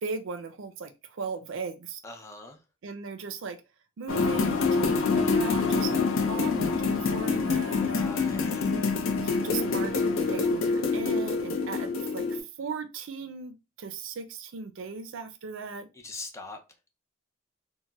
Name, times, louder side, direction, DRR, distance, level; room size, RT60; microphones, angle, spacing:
voice 1, 0.0-2.0 2.8-3.6 4.0-8.1 8.6-8.9 9.2-15.9, right 4 dB, 80° right, 0.4 m, -38 dB
voice 2, 2.0-2.6 7.7-8.7 16.0-16.6, left 2 dB, 15° left, 0.5 m, -42 dB
sound 1, 4.1-12.4, left 4 dB, 85° left, 0.5 m, -26 dB
4.0 x 2.1 x 2.2 m
head